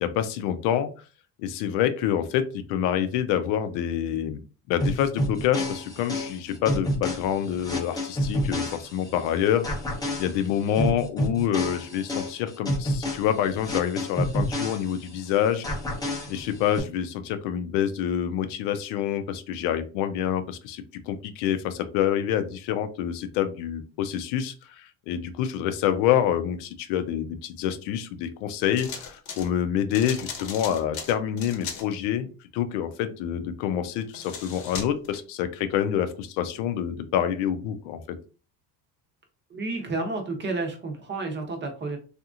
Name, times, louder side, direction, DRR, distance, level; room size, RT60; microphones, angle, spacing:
voice 1, 0.0-0.9 1.4-4.4 4.7-9.6 10.2-15.6 16.3-32.3 32.5-38.0, left 10 dB, 75° left, 9 dB, 0.6 m, -27 dB
sound 1, 4.8-9.3 9.6-15.3 15.6-16.8, equal, 10° left, 0.6 m, -29 dB
sound 2, 28.8-29.5 29.9-31.9 34.0-35.2, left 6 dB, 55° left, 0.9 m, -37 dB
voice 2, 39.5-42.0, right 3 dB, 25° right, 3 dB, 0.7 m, -31 dB
2.8 x 2.5 x 2.4 m, 0.36 s
cardioid pair, 120°, 42 cm